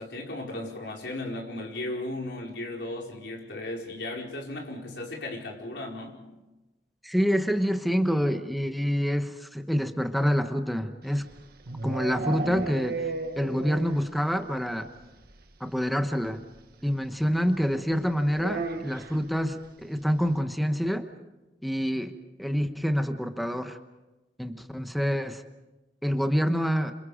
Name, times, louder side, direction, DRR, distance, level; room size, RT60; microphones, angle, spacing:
voice 1, 0.0-6.2, left 2 dB, 75° left, -1 dB, 5.0 m, -36 dB
voice 2, 7.0-11.3 11.8-13.1 13.3-14.9 15.6-16.4 16.8-21.0 21.6-23.8 24.4-25.4 26.0-26.9, equal, ahead, 6 dB, 1.1 m, -27 dB
sound 1, 11.1-14.2 14.4-14.5 14.8-14.9 15.2-15.3 16.6-16.7 18.4-19.2, right 3 dB, 60° right, 1.5 m, -34 dB
28.0 x 27.5 x 5.1 m, 1.1 s
head